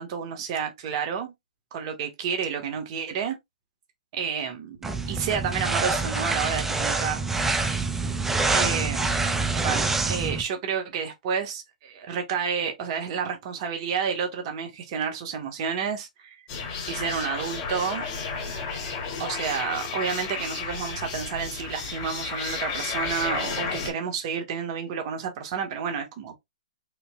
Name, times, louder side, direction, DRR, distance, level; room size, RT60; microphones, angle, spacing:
voice 1, 0.0-1.3 1.7-3.4 4.1-4.8 5.1-7.2 8.5-9.1 9.6-16.4 16.9-18.0 19.2-26.4, right 6 dB, 45° right, 1.4 m, -30 dB
sound 1, 4.8-10.4, right 3 dB, 5° right, 0.7 m, -26 dB
sound 2, 16.5-23.9, left 5 dB, 40° left, 2.5 m, -32 dB
5.8 x 3.2 x 2.3 m
hypercardioid pair, 130°, 4 cm